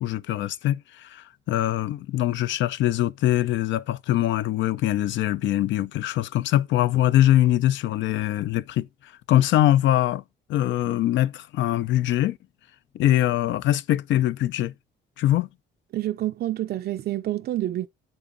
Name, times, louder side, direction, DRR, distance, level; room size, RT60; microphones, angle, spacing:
voice 1, 0.0-10.2 10.5-12.4 12.9-14.7 15.2-15.5, left 13 dB, 80° left, 0.5 m, -23 dB
voice 2, 15.9-17.9, right 13 dB, 55° right, 0.4 m, -28 dB
8.9 x 7.6 x 2.6 m
cardioid pair, 105°, 19 cm